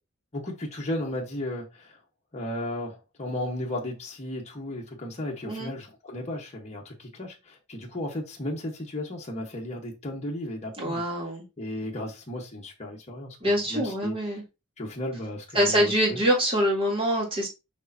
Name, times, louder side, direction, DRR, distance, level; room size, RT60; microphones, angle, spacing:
voice 1, 0.3-2.0 2.3-11.0 11.6-14.1 14.8-16.2, left 1 dB, 30° left, 1.3 m, -35 dB
voice 2, 10.8-11.4 13.4-14.4 15.5-17.5, equal, 25° right, 2.9 m, -25 dB
6.6 x 5.3 x 2.8 m
head